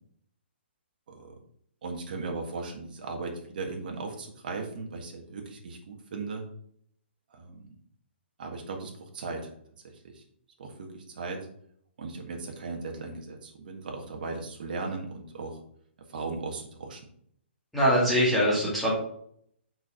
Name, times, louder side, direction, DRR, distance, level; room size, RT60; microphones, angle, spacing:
voice 1, 1.1-1.4 1.8-6.4 7.3-7.7 8.4-9.5 10.0-10.2 10.6-11.5 12.0-15.6 16.1-17.0, right 3 dB, 45° right, 2 dB, 1.8 m, -37 dB
voice 2, 17.7-18.9, equal, ahead, -9 dB, 2.4 m, -23 dB
6.0 x 4.8 x 5.7 m, 0.67 s
hypercardioid pair, 170°, 6 cm